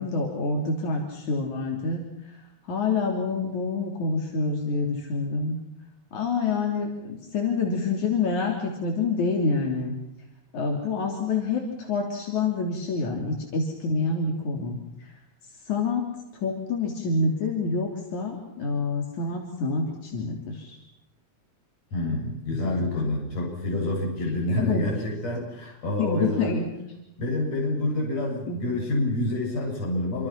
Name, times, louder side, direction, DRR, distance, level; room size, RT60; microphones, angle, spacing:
voice 1, 0.0-2.0 2.7-5.6 6.1-9.9 10.5-15.1 15.7-16.1 16.3-20.8 22.6-22.8 24.5-24.9 26.0-26.7 28.5-28.6, left 4 dB, 75° left, 1 dB, 4.6 m, -27 dB
voice 2, 21.9-26.5 27.2-30.3, left 1 dB, 60° left, -1 dB, 8.7 m, -27 dB
28.0 x 26.5 x 6.0 m, 0.88 s
omnidirectional pair, 3.4 m